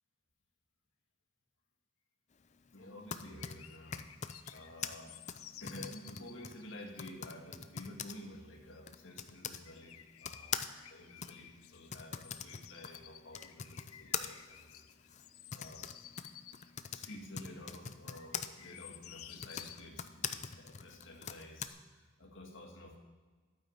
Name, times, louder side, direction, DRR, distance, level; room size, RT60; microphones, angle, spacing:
voice 1, 2.7-5.1 5.6-15.2 15.5-15.9 16.9-23.0, left 1 dB, 60° left, 0 dB, 2.2 m, -51 dB
Typing, 2.8-9.6 10.2-18.5 19.3-21.7, left 8 dB, 35° left, 0.5 m, -43 dB
sound 1, 3.2-7.1 7.5-7.6 7.8-8.8 9.1-9.2 9.5-11.9 12.2-16.8 17.5-17.6 18.1-19.8, left 12 dB, 85° left, 0.6 m, -55 dB
11.5 x 9.3 x 5.7 m, 1.4 s
head